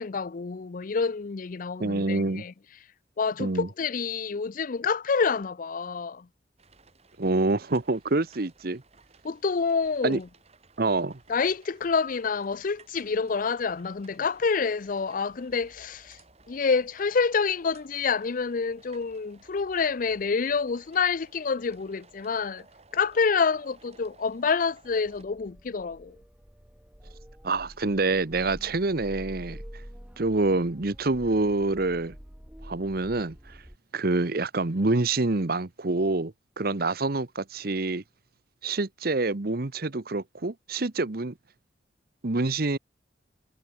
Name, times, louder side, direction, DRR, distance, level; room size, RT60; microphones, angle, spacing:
voice 1, 0.0-2.5 3.2-6.3 9.2-10.3 11.3-16.2 16.5-22.6 22.9-26.2, left 5 dB, 45° left, 0.5 m, -27 dB
voice 2, 1.8-2.4 3.4-3.7 7.2-8.8 10.0-10.2 10.8-11.2 27.4-29.6 30.2-32.1 32.6-33.6 33.9-38.0 38.6-41.3 42.2-42.8, right 2 dB, 55° right, 1.0 m, -26 dB
sound 1, 6.6-25.2, right 3 dB, 35° right, 3.5 m, -58 dB
sound 2, 24.8-33.8, equal, 5° right, 0.9 m, -47 dB
head